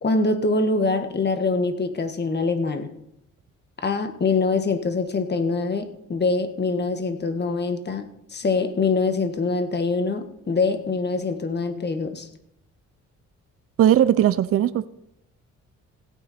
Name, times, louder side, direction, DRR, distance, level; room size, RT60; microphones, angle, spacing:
voice 1, 0.0-2.9 3.8-12.3, left 3 dB, 35° left, 8 dB, 1.5 m, -24 dB
voice 2, 13.8-14.9, right 11 dB, 50° right, 14 dB, 0.5 m, -18 dB
16.0 x 9.1 x 4.3 m, 0.81 s
cardioid pair, 90°, 30 cm